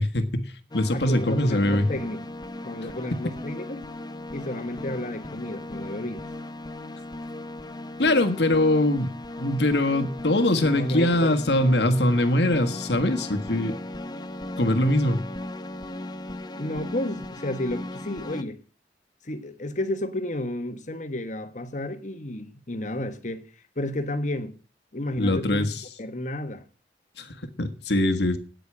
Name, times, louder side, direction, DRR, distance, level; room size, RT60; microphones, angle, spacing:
voice 1, 0.0-1.9 8.0-9.1 9.4-13.8 14.6-15.2 25.2-25.8 27.2-28.4, left 1 dB, 75° left, 1.6 m, -22 dB
sound 1, 0.7-18.4, left 1 dB, 25° left, 0.7 m, -37 dB
voice 2, 0.9-2.3 2.6-3.8 4.3-6.2 10.6-11.4 16.6-18.6 19.2-23.4 23.8-24.6 24.9-25.7 26.0-26.6, left 1 dB, 45° left, 1.3 m, -32 dB
9.3 x 8.2 x 8.6 m
head